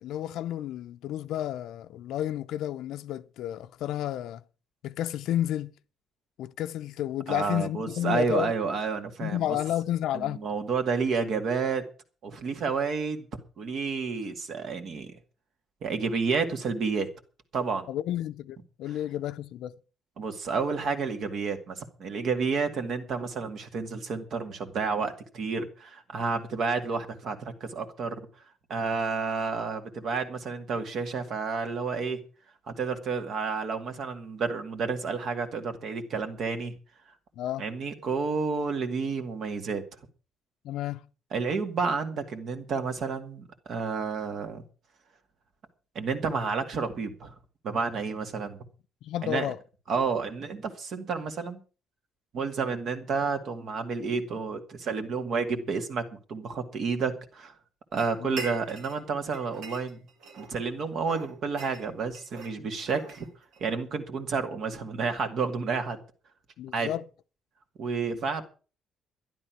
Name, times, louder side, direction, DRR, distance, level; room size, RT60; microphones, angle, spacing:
voice 1, 0.0-4.4 4.8-5.7 6.4-8.5 9.2-10.4 17.9-19.7 37.4-37.6 40.6-41.0 49.0-49.6 58.2-58.3 66.6-67.0, left 12 dB, 85° left, 0.6 m, -31 dB
voice 2, 7.3-9.5 10.1-11.8 12.2-13.3 13.6-15.1 15.8-17.1 17.5-17.9 20.2-28.2 28.7-32.2 32.7-36.7 37.6-39.8 41.3-44.6 45.9-47.3 47.6-48.6 49.2-49.5 49.9-51.6 52.3-56.0 56.3-57.5 57.9-60.0 60.4-63.3 63.6-66.0 66.7-66.9 67.8-68.4, right 5 dB, 50° right, 2.2 m, -30 dB
sound 1, 58.0-59.0 59.3-60.6 61.0-63.7, right 3 dB, 75° right, 2.3 m, -43 dB
12.5 x 11.0 x 6.0 m
cardioid pair, 170°, 0 cm